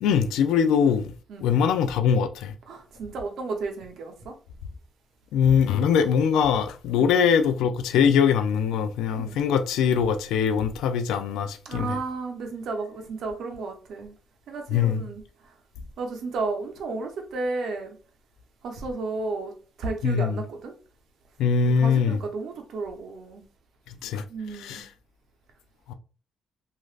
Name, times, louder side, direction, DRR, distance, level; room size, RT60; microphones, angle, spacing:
voice 1, 0.0-1.1 1.4-2.5 5.3-12.0 14.7-15.0 20.0-20.4 21.4-22.2 24.0-24.2 24.6-24.9 25.9-26.0, left 7 dB, 90° left, 0.3 m, -22 dB
voice 2, 1.3-1.6 2.7-4.4 7.0-7.1 9.2-9.4 11.6-14.1 14.5-15.2 16.0-18.0 18.6-19.5 19.8-20.7 21.6-23.4 24.3-24.8, right 3 dB, 70° right, 0.7 m, -33 dB
3.0 x 2.4 x 2.4 m
cardioid pair, 90°, 0 cm